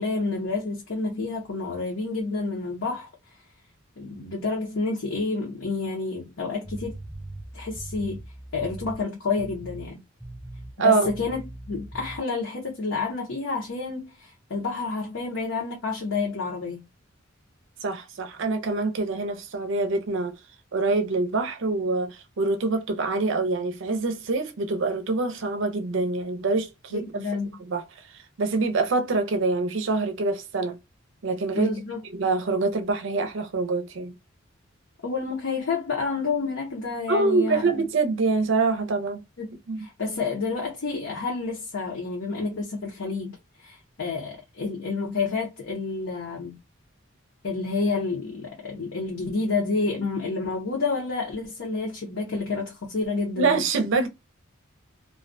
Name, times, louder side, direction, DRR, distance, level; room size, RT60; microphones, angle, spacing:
voice 1, 0.0-3.1 4.0-7.0 7.5-8.2 8.5-10.0 10.8-16.9 26.9-27.6 31.5-32.0 35.0-37.9 39.4-39.5 39.8-43.4 43.6-46.6 47.4-53.6, left 4 dB, 65° left, 0.7 m, -29 dB
sound 1, 6.6-9.1 9.4-9.9 10.2-10.7 11.0-12.2, right 1 dB, 5° right, 0.3 m, -40 dB
voice 2, 17.8-20.4 20.7-27.2 27.7-27.8 28.4-30.8 31.2-31.7 32.1-34.2 37.1-39.2 39.7-39.8 53.4-54.1, right 3 dB, 65° right, 0.5 m, -25 dB
2.3 x 2.1 x 2.5 m
head